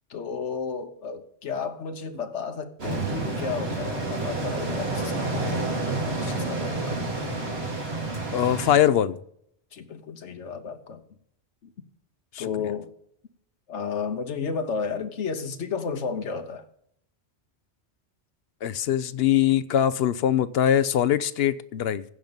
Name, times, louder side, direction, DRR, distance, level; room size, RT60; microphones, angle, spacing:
voice 1, 0.1-7.2 9.7-11.0 11.6-11.7 12.4-12.9 13.7-16.7, left 5 dB, 85° left, 1.3 m, -33 dB
sound 1, 2.8-8.8, right 2 dB, 60° right, 2.6 m, -29 dB
voice 2, 8.3-9.2 12.3-12.7 18.6-22.0, left 10 dB, 65° left, 0.8 m, -22 dB
15.5 x 5.3 x 7.2 m
omnidirectional pair, 1.2 m